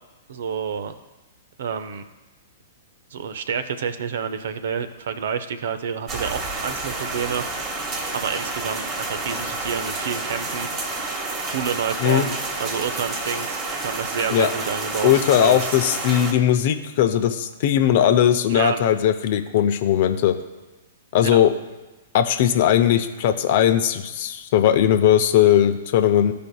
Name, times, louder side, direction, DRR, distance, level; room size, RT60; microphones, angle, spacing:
voice 1, 0.3-0.9 1.6-2.0 3.1-7.7 8.1-10.7 11.5-15.8 18.5-18.8 21.2-21.4, right 7 dB, 65° right, 10 dB, 0.5 m, -29 dB
sound 1, 6.1-16.3, right 3 dB, 30° right, 1.1 m, -29 dB
voice 2, 15.0-20.3 21.1-21.5 22.1-26.3, left 10 dB, 55° left, 8 dB, 0.6 m, -18 dB
14.0 x 5.1 x 2.3 m, 1.1 s
hypercardioid pair, 115°, 0 cm